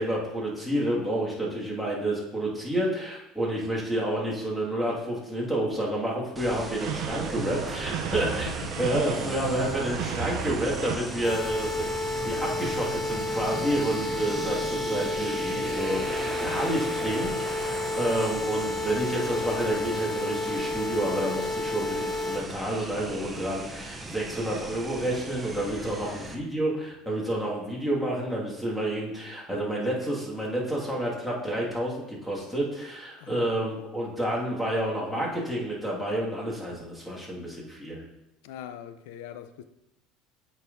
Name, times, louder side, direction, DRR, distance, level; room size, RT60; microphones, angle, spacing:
voice 1, 0.0-8.5 8.8-38.0, right 1 dB, 5° left, 1.9 m, -29 dB
sound 1, 6.4-26.4, right 2 dB, 15° right, 0.6 m, -38 dB
sound 2, 6.8-10.9, right 9 dB, 70° right, 0.5 m, -33 dB
voice 2, 8.2-8.8 11.1-11.4 25.7-26.3 33.2-33.7 38.4-39.6, left 10 dB, 85° left, 0.5 m, -42 dB
sound 3, 11.2-22.4, left 2 dB, 70° left, 1.0 m, -31 dB
8.3 x 5.3 x 2.6 m
supercardioid pair, 120°, 0 cm